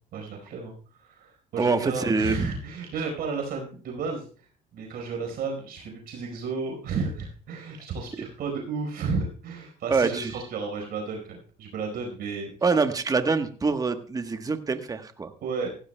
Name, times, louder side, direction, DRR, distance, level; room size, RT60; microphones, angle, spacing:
voice 1, 0.1-0.7 1.0-4.3 4.7-12.5 15.4-15.7, right 4 dB, 65° right, 2 dB, 4.5 m, -33 dB
voice 2, 1.6-2.6 9.9-10.4 12.6-15.3, right 4 dB, 20° right, 8 dB, 1.2 m, -25 dB
16.0 x 15.5 x 2.2 m, 0.40 s
cardioid pair, 110°, 17 cm